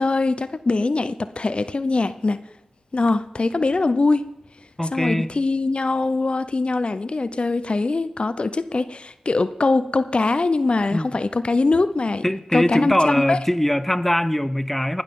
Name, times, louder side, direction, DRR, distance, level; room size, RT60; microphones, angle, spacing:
voice 1, 0.0-2.4 2.9-4.2 4.8-12.2 12.5-13.4, left 3 dB, 50° left, 13 dB, 0.7 m, -22 dB
voice 2, 4.8-5.3 10.9-11.1 12.2-15.0, left 1 dB, 10° left, 14 dB, 0.8 m, -21 dB
19.5 x 12.0 x 3.8 m, 0.92 s
cardioid pair, 40°, 2 cm